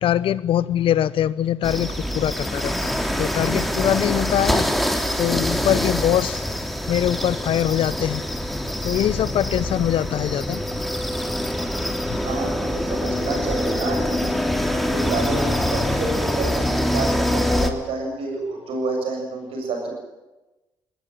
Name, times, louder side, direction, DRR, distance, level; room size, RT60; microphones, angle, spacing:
voice 1, 0.0-4.7 5.2-6.4 6.9-8.3 8.8-10.6 12.1-12.2, left 11 dB, 65° left, 19 dB, 0.8 m, -23 dB
sound 1, 1.6-17.7, left 1 dB, ahead, 3.2 m, -24 dB
voice 2, 12.2-14.3 14.7-20.0, right 3 dB, 70° right, 2 dB, 7.2 m, -28 dB
20.0 x 20.0 x 9.2 m, 1.0 s
hypercardioid pair, 45°, 10 cm